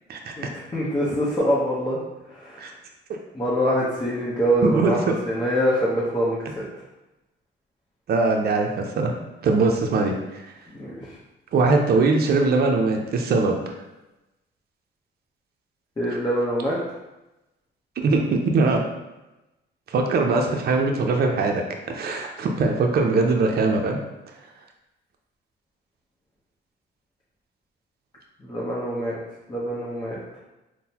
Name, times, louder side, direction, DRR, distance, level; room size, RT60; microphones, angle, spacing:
voice 1, 0.4-2.0 2.3-2.7 3.3-6.7 10.8-10.9 16.0-16.8 28.4-29.2 29.5-30.2, equal, 20° left, -7 dB, 0.8 m, -24 dB
voice 2, 4.6-4.9 8.1-9.1 9.4-10.4 11.5-13.6 18.0-18.8 19.9-21.6 21.9-24.0, right 3 dB, 55° right, 2 dB, 0.5 m, -21 dB
3.7 x 2.1 x 2.8 m, 0.99 s
cardioid pair, 90°, 20 cm